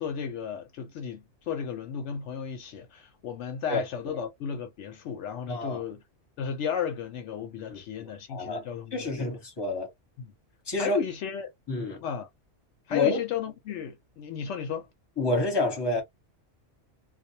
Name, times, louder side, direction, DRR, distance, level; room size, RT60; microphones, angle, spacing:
voice 1, 0.0-6.0 6.4-9.3 10.2-10.3 10.8-11.5 12.0-12.3 12.9-14.9, left 7 dB, 75° left, 0.9 m, -34 dB
voice 2, 5.5-5.8 7.7-9.9 10.7-11.0 11.7-12.0 12.9-13.2 15.2-16.0, left 3 dB, 20° left, 1.0 m, -29 dB
2.2 x 2.1 x 2.7 m
omnidirectional pair, 1.3 m